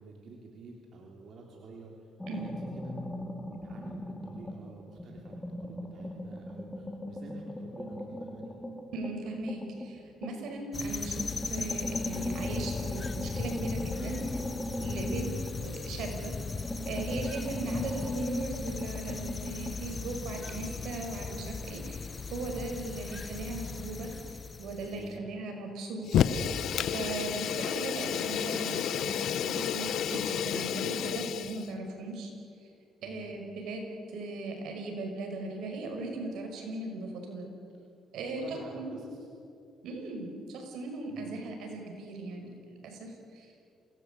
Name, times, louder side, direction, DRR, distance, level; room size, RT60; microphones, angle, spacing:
voice 1, 0.0-3.0 3.5-8.6 15.1-15.4 24.9-25.3 33.0-33.3 38.1-39.3 41.1-41.4, right 3 dB, 60° right, 0 dB, 3.6 m, -49 dB
sound 1, 2.2-4.7 5.0-10.6 11.1-16.1 16.4-19.8, left 1 dB, 10° left, 3.5 m, -38 dB
voice 2, 8.9-14.2 14.7-15.3 15.6-26.3 26.8-32.3 33.0-37.5 38.1-39.0 39.8-42.5 42.8-43.5, right 2 dB, 85° right, 3 dB, 5.6 m, -38 dB
sound 2, 10.7-25.1, left 4 dB, 35° left, 1.2 m, -38 dB
Fire, 26.1-31.7, left 9 dB, 75° left, 1.1 m, -30 dB
27.5 x 19.0 x 8.4 m, 2.5 s
cardioid pair, 90°, 0 cm